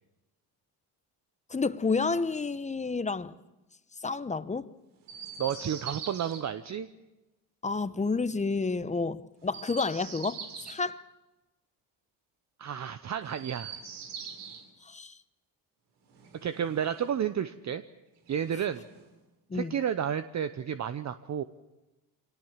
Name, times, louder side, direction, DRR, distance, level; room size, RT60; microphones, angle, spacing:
voice 1, 1.5-3.3 4.0-4.7 7.6-10.4 10.7-11.1 14.8-15.2 19.5-19.7, left 4 dB, 15° left, 0.9 m, -30 dB
Chirp tweet, 5.0-6.4 9.4-10.8 13.2-14.7 16.1-17.2 18.2-19.2, right 6 dB, 85° right, 3.4 m, -43 dB
voice 2, 5.4-6.9 12.6-13.7 16.4-17.8 18.3-18.8 19.5-21.4, right 9 dB, 40° right, 0.9 m, -31 dB
24.5 x 18.0 x 7.5 m
cardioid pair, 100°, 41 cm